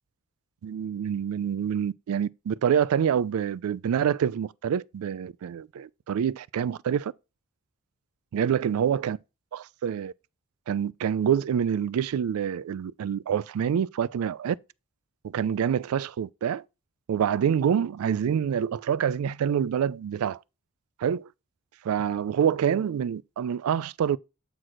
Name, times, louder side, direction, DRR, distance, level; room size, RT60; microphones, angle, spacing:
voice 1, 0.6-7.1 8.3-9.2 9.5-10.1 10.7-14.6 15.2-16.6 17.1-20.4 21.0-21.3 21.8-24.2, right 8 dB, 90° right, 0.3 m, -26 dB
7.6 x 4.7 x 4.0 m
head